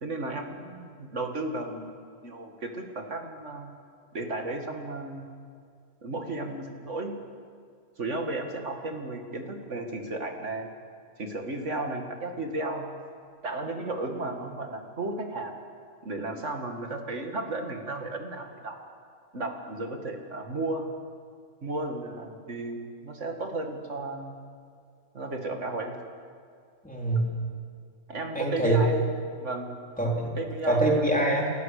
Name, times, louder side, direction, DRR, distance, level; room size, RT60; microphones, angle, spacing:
voice 1, 0.0-3.7 4.1-5.3 6.0-7.1 8.0-10.7 11.2-12.9 13.4-15.5 16.0-18.8 19.3-20.9 21.6-24.4 25.1-26.0 28.1-29.1 29.4-29.7 30.4-31.0, right 2 dB, 70° right, 4 dB, 2.5 m, -34 dB
voice 2, 26.8-27.3 28.3-28.8 30.0-30.3 30.7-31.5, right 2 dB, 5° left, -3 dB, 3.6 m, -24 dB
30.0 x 14.0 x 6.7 m, 2.2 s
omnidirectional pair, 1.3 m